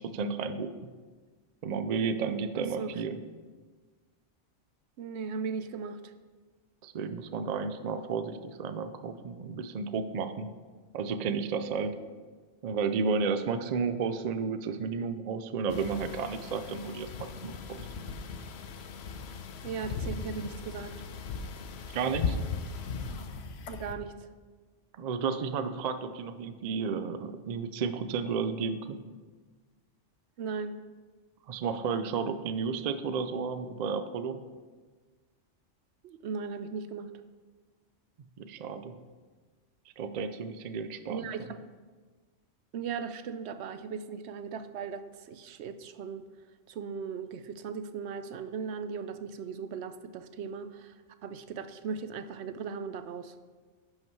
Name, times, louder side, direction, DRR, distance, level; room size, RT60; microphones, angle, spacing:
voice 1, 0.1-0.7 1.6-3.2 6.8-10.5 10.9-11.9 12.6-17.8 21.9-22.4 25.0-29.0 31.5-34.4 38.4-38.9 40.0-41.3, right 5 dB, 55° right, 10 dB, 0.4 m, -32 dB
voice 2, 2.5-3.0 5.0-6.1 19.6-20.9 23.7-24.3 30.4-30.8 36.0-37.1 41.1-41.6 42.7-46.2 46.7-50.9 51.2-53.4, right 5 dB, 70° right, 10 dB, 0.8 m, -38 dB
sound 1, 15.7-23.9, left 5 dB, 65° left, 0.9 m, -38 dB
11.0 x 5.7 x 4.5 m, 1.4 s
omnidirectional pair, 1.2 m